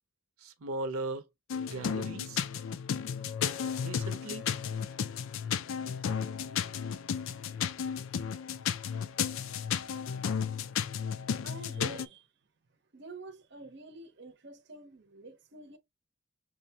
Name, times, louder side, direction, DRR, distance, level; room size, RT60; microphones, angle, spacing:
voice 1, 0.4-1.2 1.6-2.4 3.8-4.4, right 2 dB, 85° right, 0.7 m, -38 dB
sound 1, 1.5-12.1, left 7 dB, 65° left, 0.3 m, -33 dB
voice 2, 11.4-12.3 12.9-15.8, right 2 dB, 50° right, 0.7 m, -48 dB
6.2 x 2.2 x 2.7 m
head